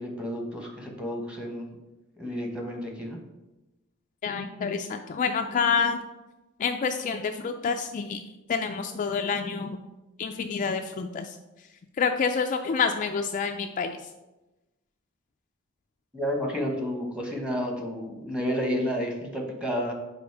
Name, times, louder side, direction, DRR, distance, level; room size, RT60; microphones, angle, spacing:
voice 1, 0.0-1.7 2.2-3.2 16.1-19.9, equal, 5° right, 1 dB, 1.1 m, -31 dB
voice 2, 4.2-6.0 6.6-8.2 8.5-9.8 10.2-11.4 12.0-14.0, left 5 dB, 35° left, 5 dB, 0.3 m, -28 dB
5.2 x 5.1 x 4.6 m, 1.0 s
head